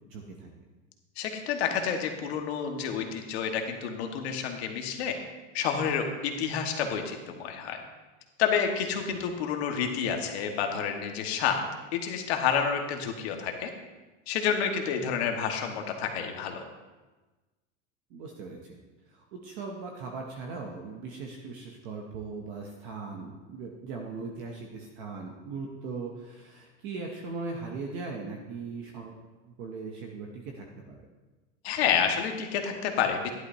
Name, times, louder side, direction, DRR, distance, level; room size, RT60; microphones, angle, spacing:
voice 1, 0.1-0.5 18.1-18.8 19.1-29.1 29.5-31.0, right 4 dB, 20° right, 1 dB, 0.4 m, -39 dB
voice 2, 1.2-5.2 5.5-7.8 8.4-11.7 11.9-13.7 14.3-16.6 31.6-33.3, left 7 dB, 55° left, 4 dB, 1.3 m, -29 dB
13.0 x 11.0 x 2.6 m, 1.2 s
supercardioid pair, 180°, 38 cm